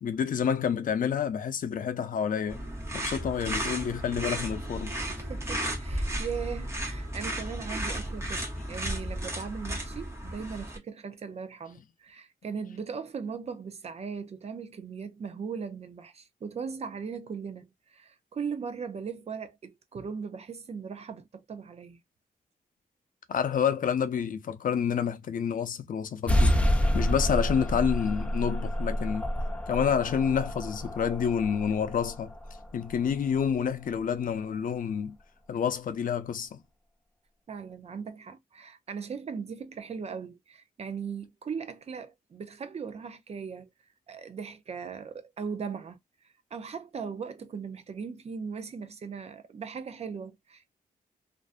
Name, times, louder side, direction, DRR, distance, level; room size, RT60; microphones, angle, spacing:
voice 1, 0.0-2.6 2.9-4.9 23.3-26.6 26.9-29.3 29.7-32.3 32.7-35.1 35.5-36.6, left 7 dB, 60° left, 0.5 m, -28 dB
sound 1, 2.5-10.8, right 1 dB, 15° right, 0.9 m, -34 dB
voice 2, 5.1-22.0 37.5-43.7 44.1-46.0 46.5-50.7, right 6 dB, 45° right, 0.5 m, -38 dB
sound 2, 26.3-33.4, equal, 10° left, 0.4 m, -28 dB
2.5 x 2.2 x 2.4 m
wide cardioid pair, 130°, 15 cm